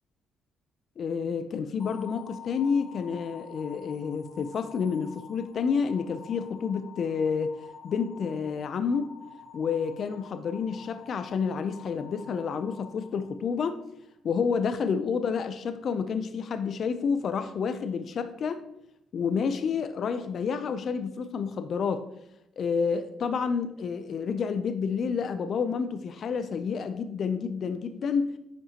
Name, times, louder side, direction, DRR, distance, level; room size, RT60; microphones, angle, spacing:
voice 1, 1.0-7.6 7.8-9.1 9.5-13.8 14.2-18.6 19.1-22.0 22.6-28.4, left 6 dB, 60° left, 10 dB, 0.5 m, -29 dB
sound 1, 1.8-14.0, left 6 dB, 25° left, 2.1 m, -48 dB
8.7 x 5.3 x 2.9 m, 0.81 s
cardioid pair, 90°, 0 cm